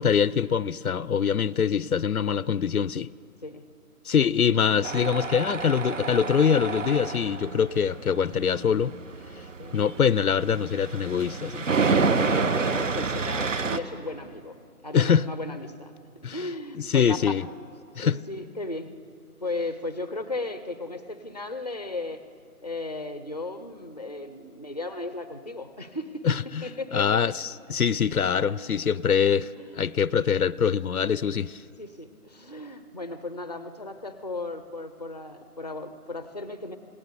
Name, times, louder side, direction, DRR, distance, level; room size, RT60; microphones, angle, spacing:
voice 1, 0.0-3.1 4.0-8.9 9.7-11.7 14.9-15.2 16.2-16.5 16.7-17.5 18.0-18.2 26.2-26.6 26.9-31.6, left 7 dB, 70° left, 0.7 m, -24 dB
Tools, 4.8-13.8, right 4 dB, 55° right, 1.2 m, -29 dB
voice 2, 12.1-14.6 14.8-15.9 16.3-17.2 17.9-18.9 19.4-22.2 22.6-27.2 28.5-29.8 31.8-36.8, left 2 dB, 30° left, 0.6 m, -36 dB
27.0 x 18.0 x 6.8 m
figure-of-eight pair, 170°, 45 cm